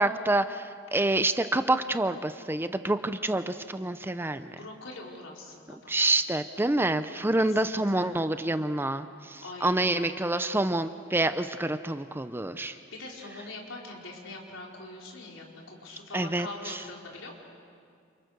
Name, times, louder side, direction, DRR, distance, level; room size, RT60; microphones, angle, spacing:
voice 1, 0.0-4.5 5.9-12.8 16.1-16.7, right 2 dB, 10° right, 11 dB, 0.6 m, -27 dB
voice 2, 4.5-5.9 7.4-8.1 9.4-10.6 12.6-17.4, left 2 dB, 80° left, -1 dB, 4.8 m, -43 dB
29.0 x 28.0 x 6.8 m, 2.2 s
head